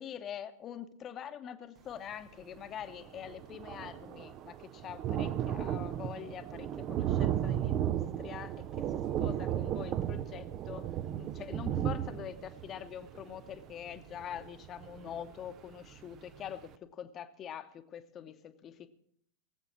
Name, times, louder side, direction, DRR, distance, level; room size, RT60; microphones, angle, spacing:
voice 1, 0.0-10.9 11.2-18.9, left 9 dB, 30° left, 10 dB, 1.0 m, -44 dB
Thunder, 2.6-2.7 2.9-15.5 16.0-16.1 16.4-16.5, right 11 dB, 35° right, 0.6 m, -35 dB
19.0 x 8.2 x 6.0 m, 0.67 s
figure-of-eight pair, 90°, 0 cm